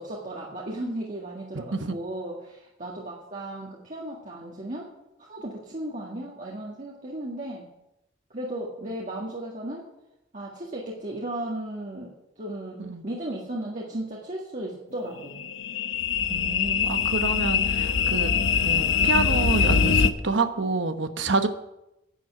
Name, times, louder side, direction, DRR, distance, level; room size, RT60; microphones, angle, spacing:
voice 1, 0.0-4.9 5.2-7.6 8.3-9.9 10.3-12.1 12.4-15.5, right 1 dB, 40° right, -4 dB, 1.9 m, -35 dB
voice 2, 1.5-1.9 12.8-13.0 16.3-18.3 18.6-21.5, right 3 dB, 60° right, 9 dB, 1.1 m, -28 dB
sound 1, 15.0-20.1, left 6 dB, 70° left, 0.8 m, -23 dB
11.0 x 9.3 x 7.5 m, 0.88 s
head